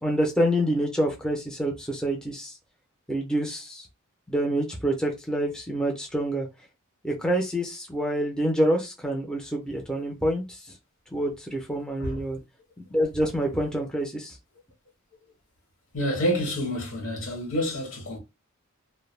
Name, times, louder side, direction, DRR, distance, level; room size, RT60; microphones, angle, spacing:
voice 1, 0.0-2.5 3.1-3.9 4.3-6.5 7.0-10.6 11.1-12.4 12.9-14.3, equal, 5° left, 0.5 m, -27 dB
voice 2, 15.9-18.2, equal, 65° left, 1.1 m, -28 dB
2.1 x 2.0 x 3.1 m
head